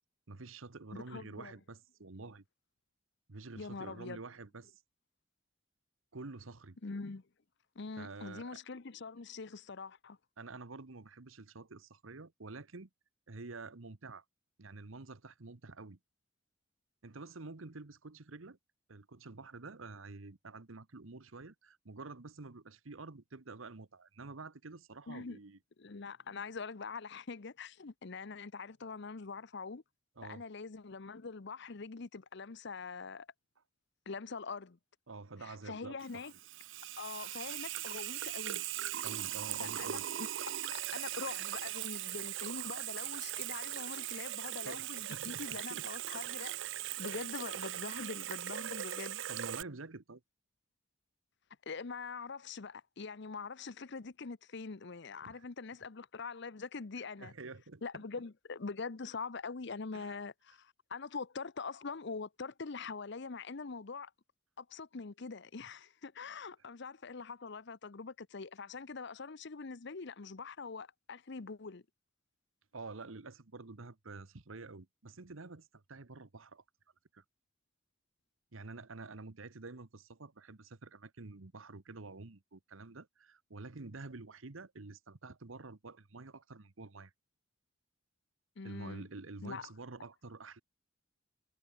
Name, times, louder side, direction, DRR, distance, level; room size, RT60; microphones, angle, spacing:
voice 1, 0.3-2.4 3.3-4.8 6.1-6.8 8.0-8.6 10.4-12.9 13.3-14.2 14.6-16.0 17.0-18.6 18.9-25.6 30.2-30.4 35.1-36.3 39.0-40.1 44.6-45.9 47.1-47.3 47.9-48.1 49.3-50.2 55.2-55.4 57.2-58.0 59.9-60.2 72.7-76.6 77.1-77.2 78.5-87.1 88.6-90.6, right 3 dB, 85° right, 1.2 m, -48 dB
voice 2, 0.9-1.5 3.6-4.2 6.8-7.2 7.8-10.2 25.1-25.4 25.8-29.8 30.2-33.3 34.1-34.8 35.4-36.3 37.0-38.6 39.6-40.3 40.7-46.5 47.0-49.2 51.7-57.3 57.8-64.1 64.6-71.8 88.6-89.1 89.4-89.7, left 4 dB, 60° left, 0.8 m, -44 dB
Water tap faucet / Sink (filling or washing), 36.0-49.6, right 13 dB, 65° right, 0.6 m, -39 dB
head